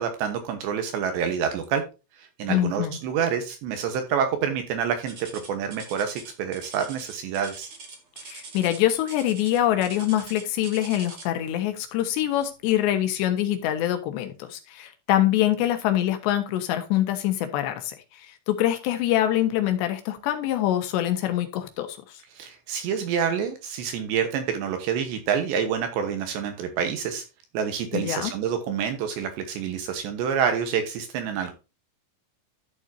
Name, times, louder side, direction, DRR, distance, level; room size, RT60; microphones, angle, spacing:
voice 1, 0.0-1.8 2.2-7.7 22.3-27.2 27.5-31.5, right 7 dB, 70° right, 7 dB, 3.0 m, -27 dB
voice 2, 2.5-3.0 8.2-22.0 27.9-28.3, left 12 dB, 70° left, 7 dB, 3.2 m, -25 dB
sound 1, 5.1-11.5 12.4-12.7 13.2-13.3 14.0-14.1, right 4 dB, 45° right, 1.8 m, -43 dB
13.0 x 7.2 x 2.7 m, 0.29 s
omnidirectional pair, 5.8 m